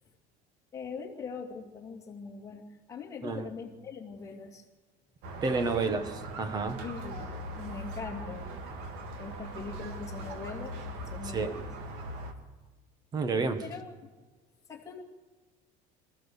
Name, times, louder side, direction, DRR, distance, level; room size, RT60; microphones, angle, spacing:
voice 1, 0.7-4.6 5.9-6.0 6.8-8.6 9.2-10.7 11.1-11.6 13.6-13.9 14.7-15.0, left 5 dB, 20° left, 1 dB, 2.5 m, -42 dB
Squeak, 5.2-12.3, right 1 dB, 65° right, 2.7 m, -40 dB
voice 2, 5.4-6.1 6.4-6.8 11.2-11.6 13.1-13.6, right 4 dB, 20° right, 10 dB, 1.5 m, -29 dB
27.0 x 15.5 x 7.2 m, 1.3 s
cardioid pair, 180°, 18 cm